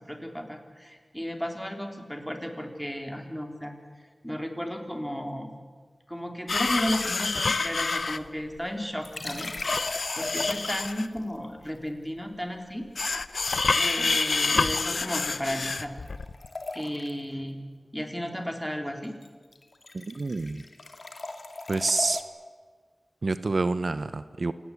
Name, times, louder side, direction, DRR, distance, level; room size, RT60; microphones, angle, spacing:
voice 1, 0.0-3.8 4.2-5.5 6.1-9.5 9.8-12.9 13.7-16.0 16.7-17.6 17.9-19.1, equal, 5° left, 4 dB, 3.5 m, -34 dB
sound 1, 6.5-8.2 9.6-11.2 13.0-16.5, left 4 dB, 85° left, 0.8 m, -27 dB
sound 2, 9.0-11.1 13.5-17.3 19.0-19.3 19.5-22.2, left 2 dB, 65° left, 2.4 m, -38 dB
voice 2, 19.9-20.6 21.7-22.2 23.2-24.5, right 3 dB, 70° right, 13 dB, 0.8 m, -28 dB
28.0 x 18.5 x 8.5 m, 1.5 s
wide cardioid pair, 70°, 0 cm